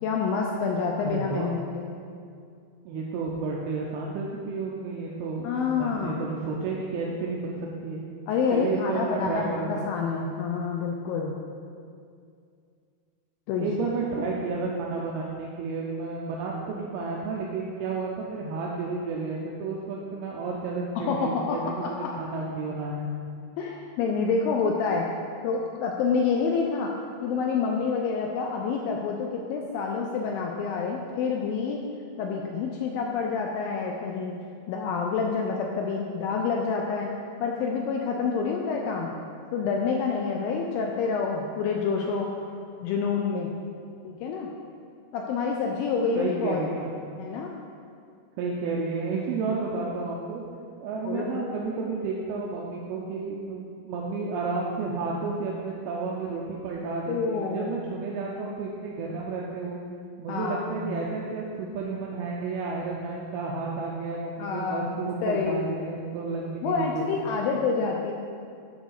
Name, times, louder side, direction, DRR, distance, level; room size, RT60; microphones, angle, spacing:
voice 1, 0.0-1.9 5.4-6.1 8.3-11.4 13.5-13.8 21.0-22.1 23.6-25.1 25.4-26.9 27.2-31.8 32.2-34.4 34.7-37.1 37.4-39.1 39.5-42.3 42.8-43.5 44.0-44.5 45.1-46.8 47.2-47.5 51.0-51.5 57.1-57.7 60.3-61.1 64.4-65.9 66.6-68.1, left 5 dB, 80° left, 1 dB, 2.1 m, -28 dB
voice 2, 1.0-1.5 2.9-7.6 7.8-8.0 8.5-9.9 13.6-23.1 46.2-46.9 48.4-50.4 50.8-59.8 60.2-67.4, right 4 dB, 80° right, -3 dB, 2.6 m, -31 dB
10.0 x 3.8 x 6.4 m, 2.3 s
omnidirectional pair, 4.6 m